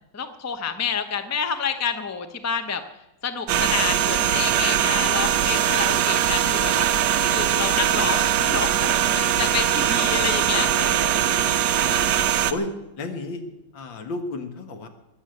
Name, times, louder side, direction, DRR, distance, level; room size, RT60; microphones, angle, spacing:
voice 1, 0.1-2.8 3.2-6.9 7.3-11.2 11.5-11.6, left 6 dB, 15° left, 8 dB, 0.5 m, -29 dB
sound 1, 3.5-12.5, right 10 dB, 70° right, 1.3 m, -21 dB
voice 2, 6.5-7.1 11.8-12.1 12.5-12.7 13.0-13.4 13.7-14.9, left 2 dB, 85° left, 6 dB, 2.3 m, -33 dB
21.0 x 7.5 x 7.9 m, 0.95 s
omnidirectional pair, 2.0 m